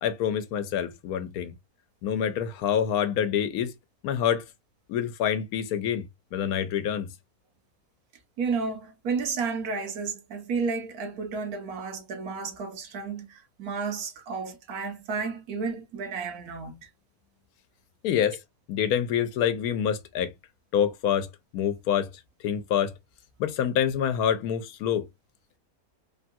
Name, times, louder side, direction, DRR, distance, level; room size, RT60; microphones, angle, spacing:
voice 1, 0.0-1.5 2.0-3.7 4.0-4.4 4.9-6.0 6.3-7.1 18.0-18.4 18.7-20.3 20.7-22.1 22.4-22.9 23.4-25.1, left 9 dB, 85° left, 1.1 m, -26 dB
voice 2, 8.4-16.9, right 5 dB, 85° right, 1.4 m, -32 dB
3.5 x 2.2 x 2.6 m
omnidirectional pair, 1.6 m